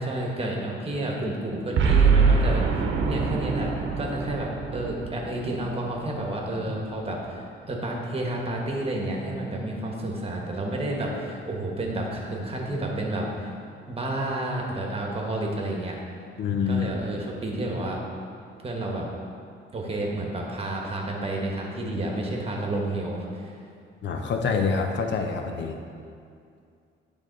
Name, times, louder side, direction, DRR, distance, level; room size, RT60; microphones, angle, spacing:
voice 1, 0.0-13.5 13.9-16.0 16.7-18.0 18.6-19.1 19.7-23.6, right 1 dB, 30° right, -1 dB, 1.3 m, -30 dB
Boom, 1.8-6.2, right 5 dB, 70° right, 0.9 m, -23 dB
voice 2, 16.4-16.9 24.0-25.8, left 5 dB, 65° left, 4 dB, 0.7 m, -26 dB
10.5 x 3.5 x 4.0 m, 2.4 s
cardioid pair, 90°, 20 cm